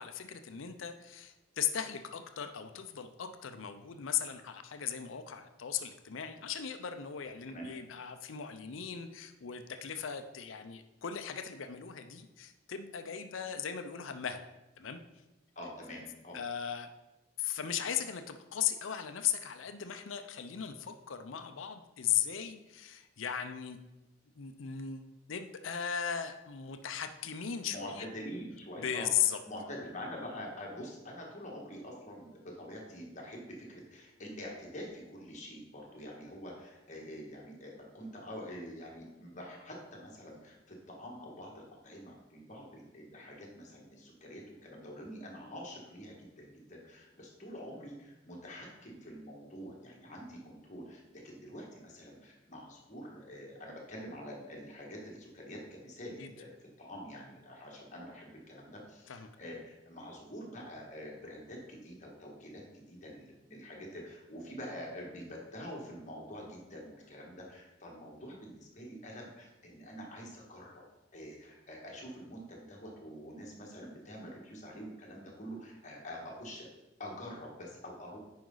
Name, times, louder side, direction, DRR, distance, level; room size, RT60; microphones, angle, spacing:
voice 1, 0.0-14.4 14.8-15.0 16.3-16.9 17.4-23.8 24.4-25.0 25.3-28.1 28.8-29.4 56.2-56.3 59.1-59.3, left 9 dB, 90° left, 8 dB, 0.6 m, -37 dB
voice 2, 15.6-16.4 27.7-29.1 29.5-70.8 71.1-76.7 77.0-78.2, equal, 40° left, -1 dB, 1.7 m, -46 dB
9.5 x 5.2 x 3.9 m, 1.0 s
head